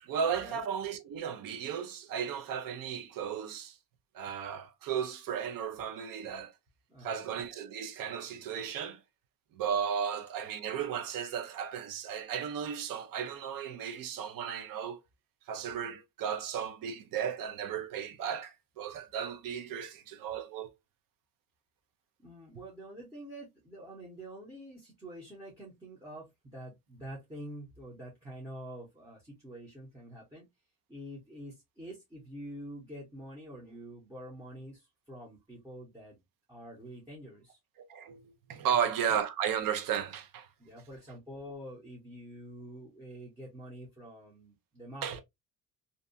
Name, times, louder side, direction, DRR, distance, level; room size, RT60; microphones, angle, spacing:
voice 1, 0.0-3.8 4.1-6.5 7.0-9.0 9.5-15.0 15.5-20.7 37.9-40.5 45.0-45.2, right 8 dB, 70° right, 0.6 m, -35 dB
voice 2, 6.9-7.4 22.2-30.4 30.9-36.2 36.5-37.6 38.6-38.9 40.6-45.2, right 1 dB, 10° right, 0.7 m, -47 dB
2.6 x 2.2 x 2.5 m
cardioid pair, 150°, 35 cm